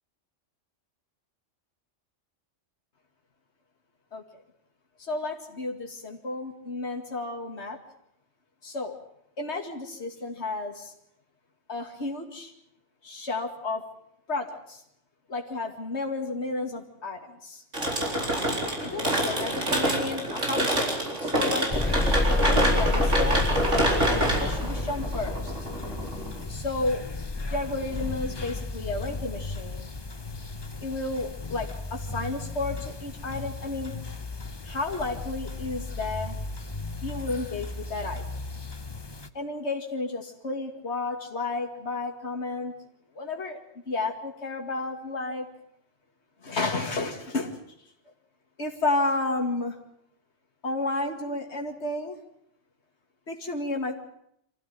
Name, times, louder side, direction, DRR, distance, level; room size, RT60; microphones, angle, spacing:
voice 1, 4.1-4.4 5.0-7.8 8.6-9.0 9.4-10.9 11.7-12.5 13.0-13.8 14.3-14.8 15.3-17.6 18.5-21.7 22.4-23.5 24.0-25.5 26.5-27.1 27.5-29.9 30.8-33.9 34.6-36.4 37.0-38.4 39.3-42.7 43.1-43.6 43.9-45.5 46.4-47.6 48.6-49.8 50.6-52.2 53.3-53.9, left 2 dB, 65° left, 3 dB, 2.7 m, -32 dB
sound 1, 17.7-26.4, right 1 dB, 80° right, 4.8 m, -26 dB
sound 2, 21.7-39.3, left 3 dB, 25° left, 0.9 m, -32 dB
25.0 x 15.5 x 9.2 m, 0.74 s
omnidirectional pair, 1.2 m